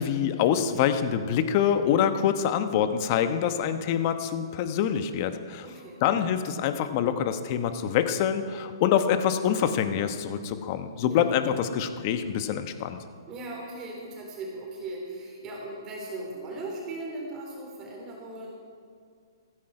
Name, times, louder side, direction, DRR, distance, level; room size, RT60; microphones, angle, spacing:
voice 1, 0.0-5.6 6.0-13.0, left 9 dB, 40° left, 9 dB, 1.1 m, -25 dB
voice 2, 5.6-6.0 11.1-11.3 13.3-18.5, right 2 dB, 25° right, -2 dB, 3.6 m, -38 dB
15.5 x 15.0 x 4.9 m, 2.2 s
hypercardioid pair, 140°, 2 cm